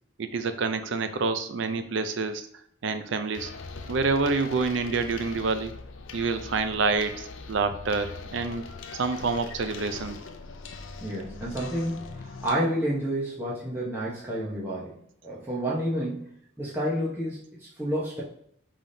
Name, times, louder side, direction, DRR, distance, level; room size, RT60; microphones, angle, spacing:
voice 1, 0.2-2.5 2.8-3.5 3.9-5.7 6.1-8.7 8.9-10.2, right 4 dB, 65° right, 10 dB, 0.4 m, -27 dB
sound 1, 3.3-12.5, left 3 dB, 70° left, 0.5 m, -41 dB
voice 2, 11.0-15.0 15.2-16.3 16.6-18.2, equal, 10° right, -7 dB, 0.9 m, -30 dB
5.5 x 3.5 x 2.7 m, 0.67 s
head